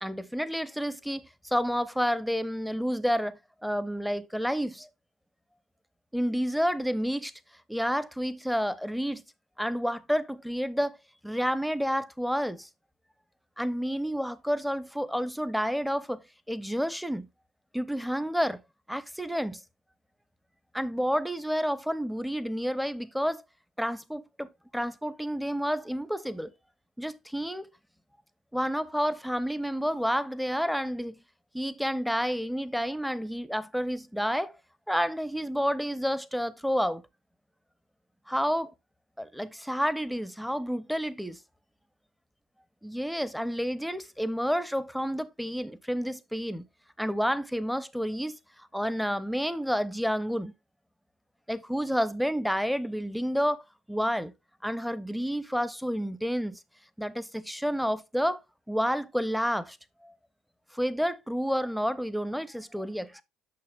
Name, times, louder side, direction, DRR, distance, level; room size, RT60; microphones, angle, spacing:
voice 1, 0.0-4.9 6.1-7.3 7.7-9.2 9.6-11.0 11.2-12.7 13.6-16.2 16.5-17.3 17.7-18.6 18.9-19.6 20.7-23.4 23.8-26.5 27.0-27.7 28.5-31.2 31.5-34.5 34.9-37.0 38.3-38.7 39.2-41.4 42.8-46.6 47.0-50.5 51.5-53.6 53.9-54.3 54.6-56.6 57.0-58.4 58.7-59.8 60.0-60.1 60.7-63.2, equal, ahead, 0.7 m, -30 dB
8.6 x 6.4 x 2.4 m
hypercardioid pair, 60°, 0 cm